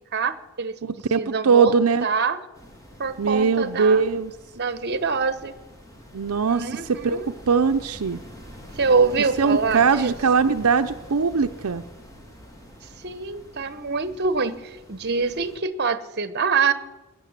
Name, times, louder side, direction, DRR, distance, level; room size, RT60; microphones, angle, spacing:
voice 1, 0.1-0.8 1.2-1.8 2.0-2.4 3.0-4.1 4.5-5.6 6.5-7.3 8.7-10.1 13.0-16.7, right 5 dB, 50° right, 13 dB, 1.0 m, -25 dB
voice 2, 0.8-2.1 3.2-4.3 6.1-6.6 7.0-8.2 9.4-11.8, right 5 dB, 80° right, 8 dB, 0.6 m, -21 dB
sound 1, 2.5-15.6, equal, 15° left, 3.0 m, -45 dB
19.5 x 9.9 x 7.4 m, 1.1 s
head